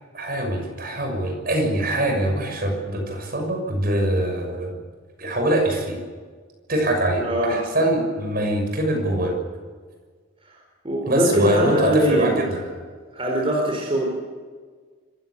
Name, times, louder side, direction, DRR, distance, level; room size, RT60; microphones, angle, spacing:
voice 1, 0.1-4.8 5.2-6.0 6.7-9.4 11.1-12.6, right 1 dB, 50° right, 3 dB, 6.6 m, -23 dB
voice 2, 7.2-7.6 10.8-12.3 13.1-14.1, right 1 dB, 30° right, 0 dB, 4.2 m, -22 dB
25.5 x 15.5 x 8.5 m, 1.5 s
head